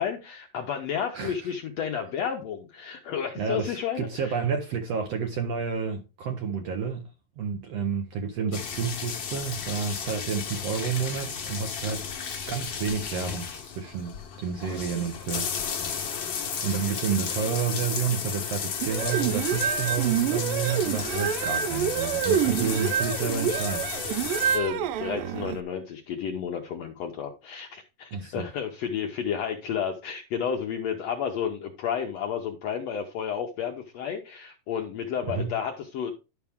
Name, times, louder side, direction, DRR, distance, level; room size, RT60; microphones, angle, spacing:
voice 1, 0.0-4.4 24.5-36.1, left 8 dB, 75° left, 1.6 m, -31 dB
voice 2, 1.1-1.5 3.4-7.1 7.4-12.1 12.5-23.9 28.1-28.5 35.3-35.5, right 6 dB, 65° right, 1.6 m, -30 dB
sound 1, 8.5-24.6, left 6 dB, 50° left, 1.4 m, -33 dB
sound 2, 18.8-25.6, right 9 dB, 85° right, 2.3 m, -27 dB
11.5 x 5.8 x 3.5 m
omnidirectional pair, 3.9 m